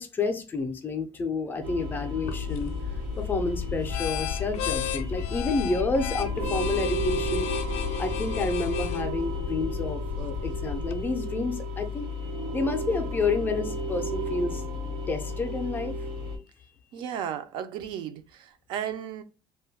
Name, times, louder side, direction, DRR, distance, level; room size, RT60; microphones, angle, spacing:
voice 1, 0.0-2.7 3.2-7.5 8.0-12.1 12.5-14.6 15.1-15.9, left 3 dB, 20° left, 0.4 m, -29 dB
sound 1, 1.6-16.4, left 1 dB, 85° right, 1.2 m, -33 dB
sound 2, 2.2-11.0, left 6 dB, 85° left, 0.4 m, -33 dB
voice 2, 16.9-19.2, right 9 dB, 55° right, 0.4 m, -34 dB
2.5 x 2.2 x 3.3 m
cardioid pair, 160°, 10 cm